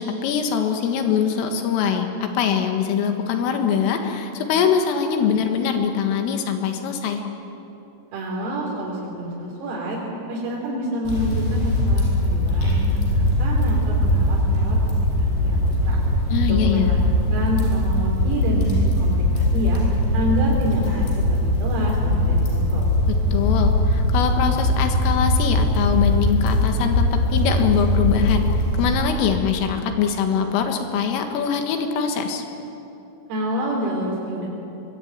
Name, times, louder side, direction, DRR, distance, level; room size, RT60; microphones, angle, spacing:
voice 1, 0.0-7.2 16.3-16.9 23.3-28.5 28.8-32.4, left 7 dB, 80° left, 5 dB, 4.2 m, -23 dB
voice 2, 8.1-10.0 10.3-16.0 16.5-17.0 17.3-18.7 19.0-19.8 20.1-22.8 33.3-34.5, right 1 dB, 85° right, -3 dB, 6.1 m, -28 dB
sound 1, 11.1-29.4, left 1 dB, 55° left, 7.1 m, -21 dB
23.5 x 23.0 x 9.1 m, 2.9 s
omnidirectional pair, 5.9 m